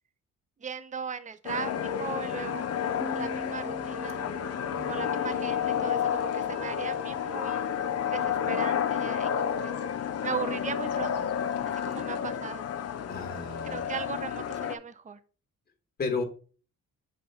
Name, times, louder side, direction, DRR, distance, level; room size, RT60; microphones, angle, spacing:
voice 1, 0.6-2.7 3.1-4.2 4.9-7.7 8.1-9.7 10.2-11.3 11.7-12.6 13.6-15.2, right 6 dB, 25° right, 13 dB, 0.6 m, -37 dB
sound 1, 1.4-14.7, left 8 dB, 55° left, 0.8 m, -31 dB
Piano, 3.0-6.4, left 2 dB, ahead, 1.9 m, -43 dB
voice 2, 4.7-5.0 13.1-14.0 16.0-16.2, left 4 dB, 30° left, 2 dB, 1.7 m, -34 dB
6.9 x 3.3 x 5.6 m, 0.38 s
cardioid pair, 90°, 30 cm